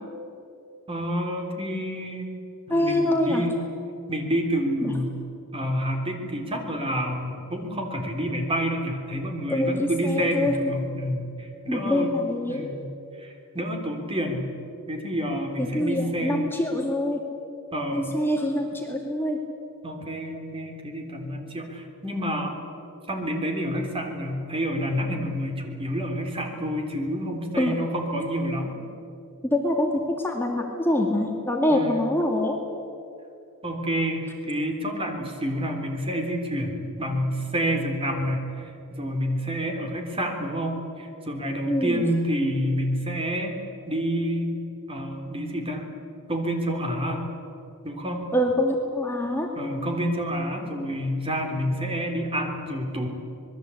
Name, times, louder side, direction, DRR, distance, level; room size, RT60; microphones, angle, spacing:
voice 1, 0.9-2.3 2.7-3.5 4.1-5.2 5.5-12.1 12.5-12.9 13.2-14.5 14.9-16.5 17.7-18.1 19.8-22.6 23.1-28.8 31.7-32.1 33.6-43.6 43.9-44.5 44.9-45.9 46.3-47.3 47.8-48.3 49.6-53.1, equal, 25° right, 3 dB, 3.4 m, -28 dB
voice 2, 2.7-3.4 4.8-4.9 9.5-10.5 11.7-12.8 15.6-17.2 17.9-19.4 27.6-27.8 29.5-32.6 41.7-42.1 48.3-49.5, left 1 dB, 10° left, 1 dB, 2.2 m, -25 dB
26.0 x 21.0 x 8.4 m, 2.7 s
head